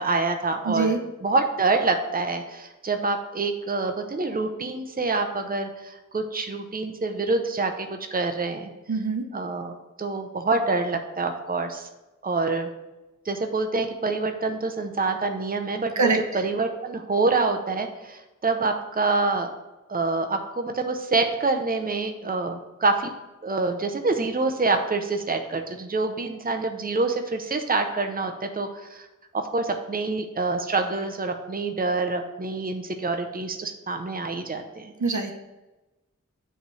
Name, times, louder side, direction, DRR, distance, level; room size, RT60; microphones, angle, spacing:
voice 1, 0.0-8.7 9.3-11.9 12.2-12.7 13.3-19.5 19.9-23.1 23.4-29.1 29.3-34.9, right 3 dB, 30° right, 5 dB, 0.7 m, -26 dB
voice 2, 0.7-1.0 8.9-9.3 16.0-16.2 35.0-35.4, right 4 dB, 70° right, 5 dB, 0.8 m, -23 dB
7.9 x 3.2 x 6.1 m, 1.1 s
wide cardioid pair, 45°, 31 cm